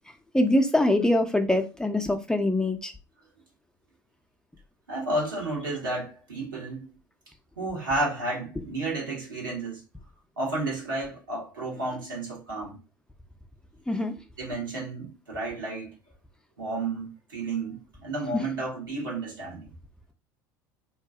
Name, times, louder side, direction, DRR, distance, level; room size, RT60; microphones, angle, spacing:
voice 1, 0.3-2.9 13.9-14.1 18.3-18.4, left 1 dB, 5° left, 0.5 m, -23 dB
voice 2, 4.9-6.9 7.6-9.8 10.4-12.8 14.4-16.0 16.6-19.7, right 2 dB, 85° right, 1.2 m, -32 dB
2.8 x 2.6 x 2.4 m
hypercardioid pair, 70°, 11 cm